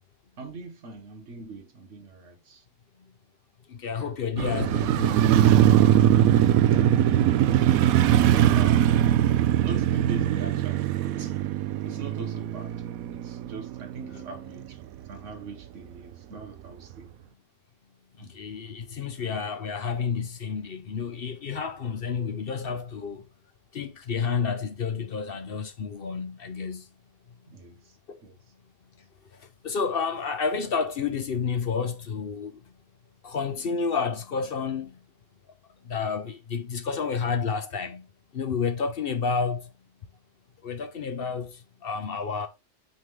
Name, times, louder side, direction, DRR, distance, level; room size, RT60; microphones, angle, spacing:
voice 1, 0.4-2.6 4.0-4.1 6.3-7.4 8.3-9.2 9.6-11.3 11.8-12.7 13.1-14.8 15.1-17.1 18.2-18.4 27.5-28.0 28.2-28.3, right 4 dB, 50° right, 1.5 m, -41 dB
voice 2, 3.7-5.4 14.1-14.2 18.2-23.3 23.7-26.9 28.1-28.2 29.4-32.6 33.2-35.0 35.8-38.1 38.3-39.7 40.6-42.5, left 5 dB, 55° left, 0.6 m, -30 dB
Motorcycle, 4.4-14.5 14.8-14.9, right 11 dB, 70° right, 0.9 m, -21 dB
9.0 x 3.7 x 3.1 m
omnidirectional pair, 1.8 m